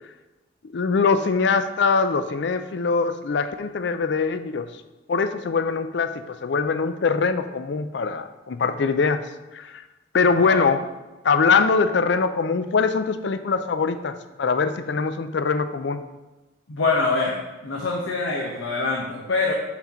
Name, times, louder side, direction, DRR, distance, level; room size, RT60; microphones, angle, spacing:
voice 1, 0.7-4.7 5.1-9.2 9.5-9.8 10.1-10.8 11.2-16.0, left 5 dB, 60° left, 10 dB, 0.4 m, -22 dB
voice 2, 16.7-19.5, left 3 dB, 85° left, -1 dB, 0.9 m, -25 dB
6.0 x 4.4 x 5.6 m, 1.1 s
head